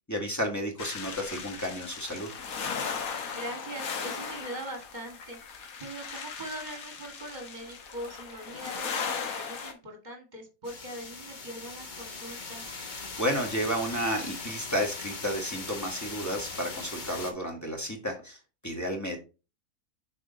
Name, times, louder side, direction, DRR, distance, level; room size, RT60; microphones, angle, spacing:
voice 1, 0.1-2.3 13.2-18.4 18.6-19.2, equal, 10° left, 2 dB, 1.4 m, -32 dB
sound 1, 0.8-9.7, left 6 dB, 75° left, 1.4 m, -37 dB
voice 2, 3.1-12.7 17.1-17.5, right 1 dB, 30° right, 2 dB, 1.9 m, -42 dB
sound 2, 10.6-17.3, left 4 dB, 40° left, 0.9 m, -40 dB
6.2 x 4.2 x 3.9 m, 0.31 s
omnidirectional pair, 1.5 m